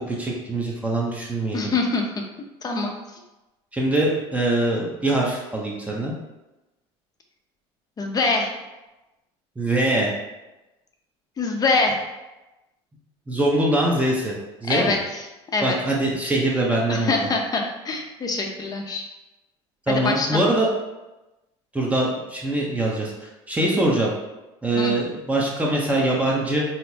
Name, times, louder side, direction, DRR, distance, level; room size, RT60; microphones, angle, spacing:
voice 1, 0.0-1.7 3.7-6.1 9.6-10.1 13.3-15.0 15.6-17.2 19.9-20.7 21.7-24.1 24.6-26.6, right 1 dB, 10° right, -3 dB, 0.7 m, -23 dB
voice 2, 1.5-2.1 2.6-2.9 8.0-8.5 11.4-12.0 14.7-15.3 15.5-15.8 16.9-19.0 19.9-20.4 24.8-24.9, left 3 dB, 30° left, 2 dB, 0.6 m, -24 dB
4.3 x 2.0 x 2.7 m, 1.0 s
supercardioid pair, 100°, 14 cm